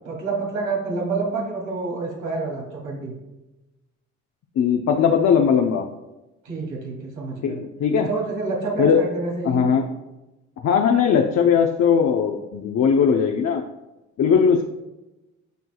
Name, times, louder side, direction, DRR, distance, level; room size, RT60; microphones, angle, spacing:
voice 1, 0.0-3.2 6.4-7.6 8.1-9.7, right 3 dB, 85° right, -2 dB, 2.7 m, -28 dB
voice 2, 4.6-5.9 7.4-8.1 8.8-9.0 9.4-9.9 10.6-13.6 14.2-14.6, left 7 dB, 60° left, 3 dB, 0.8 m, -19 dB
13.5 x 4.6 x 2.3 m, 1.0 s
cardioid pair, 90°, 30 cm